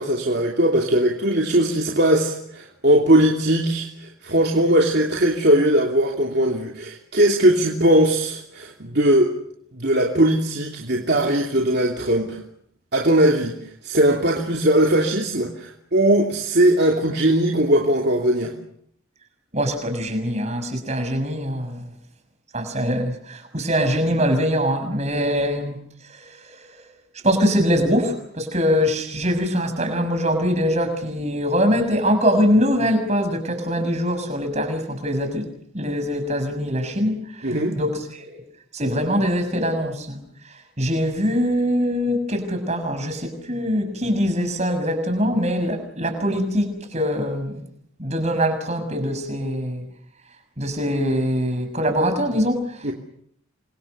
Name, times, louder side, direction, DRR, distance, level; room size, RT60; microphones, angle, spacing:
voice 1, 0.0-9.3 9.7-12.4 12.9-13.5 13.8-18.5 37.4-37.8 52.8-52.9, right 1 dB, 50° right, 0 dB, 3.0 m, -19 dB
voice 2, 19.5-21.8 22.5-25.8 26.1-26.4 26.7-26.8 27.2-35.5 35.7-38.4 38.7-40.2 40.4-47.6 48.0-49.8 50.6-52.9, equal, 35° right, 7 dB, 6.6 m, -23 dB
29.5 x 25.5 x 6.8 m, 0.69 s
head